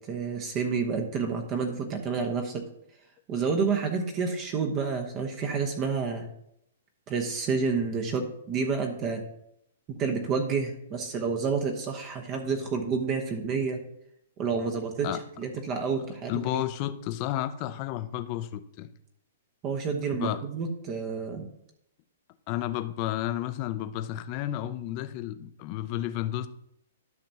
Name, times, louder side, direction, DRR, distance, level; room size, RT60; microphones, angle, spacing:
voice 1, 0.1-2.7 3.3-6.3 7.1-9.2 9.9-13.8 14.4-15.1 15.4-16.6 19.6-21.5, right 5 dB, 25° right, 4 dB, 0.9 m, -29 dB
voice 2, 14.5-15.2 16.3-18.9 20.1-20.4 22.5-26.5, left 13 dB, 35° left, 11 dB, 0.5 m, -32 dB
12.0 x 5.9 x 2.8 m, 0.75 s
hypercardioid pair, 155°, 0 cm